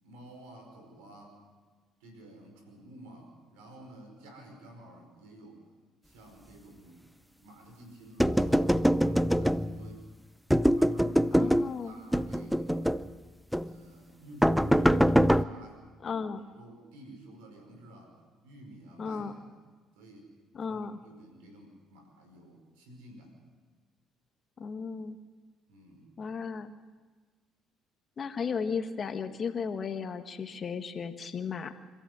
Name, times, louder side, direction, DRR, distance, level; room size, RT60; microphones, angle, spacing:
voice 1, 0.0-1.4 2.0-5.6 6.0-7.0 7.4-10.0 10.7-13.0 13.6-16.3 16.6-18.2 18.4-19.6 19.9-20.3 20.7-23.4 25.7-26.1, right 1 dB, 85° right, 4 dB, 5.1 m, -51 dB
sound 1, 8.2-9.9 10.5-11.7 12.1-13.1 13.5-13.7 14.4-15.4, equal, ahead, 0.6 m, -24 dB
voice 2, 11.3-11.9 16.0-16.4 19.0-19.3 20.5-21.0 24.6-25.2 26.2-26.7 28.2-31.7, left 5 dB, 45° left, 8 dB, 1.6 m, -35 dB
26.0 x 14.0 x 8.1 m, 1.4 s
supercardioid pair, 70°, 0 cm